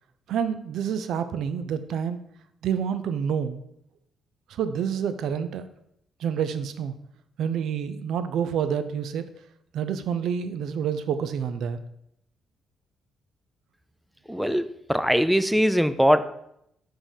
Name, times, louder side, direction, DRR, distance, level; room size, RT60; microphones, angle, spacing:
voice 1, 0.3-2.2 2.6-3.6 4.5-5.7 6.2-6.9 7.4-9.3 9.7-11.8, right 8 dB, 75° right, 11 dB, 0.4 m, -28 dB
voice 2, 14.3-16.3, equal, ahead, 11 dB, 0.4 m, -21 dB
5.2 x 3.7 x 4.9 m, 0.75 s
cardioid pair, 90°, 0 cm